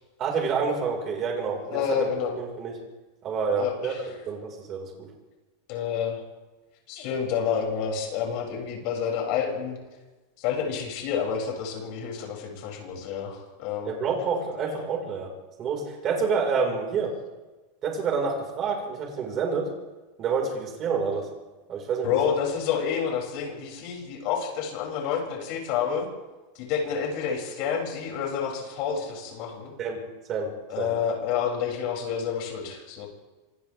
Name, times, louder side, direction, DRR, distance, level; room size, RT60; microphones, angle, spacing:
voice 1, 0.2-1.8 2.4-2.7 3.2-3.9 4.3-5.1 13.9-15.3 15.6-17.1 17.8-19.7 20.2-21.2 21.7-22.1 29.8-30.0 30.3-30.9, right 5 dB, 30° right, 0 dB, 5.9 m, -28 dB
voice 2, 1.6-2.3 3.6-4.1 5.7-6.2 6.9-9.8 10.4-13.9 22.0-26.1 26.5-29.7 30.7-33.1, left 7 dB, 50° left, -1 dB, 8.0 m, -29 dB
27.5 x 26.5 x 3.8 m, 1.2 s
supercardioid pair, 155°, 0 cm